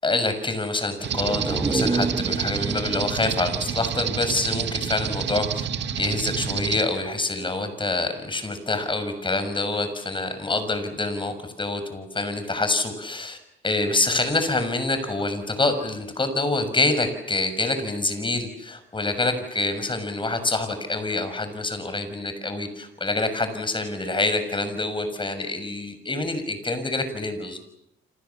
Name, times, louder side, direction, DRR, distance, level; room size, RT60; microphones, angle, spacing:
voice 1, 0.0-5.6 6.0-13.4 13.6-27.6, left 2 dB, 25° left, 9 dB, 6.7 m, -26 dB
sound 1, 1.0-4.7 5.1-5.2, right 3 dB, 20° right, 1.4 m, -30 dB
sound 2, 1.0-6.8, right 8 dB, 65° right, 2.2 m, -28 dB
29.5 x 27.5 x 7.3 m, 0.84 s
cardioid pair, 90°, 20 cm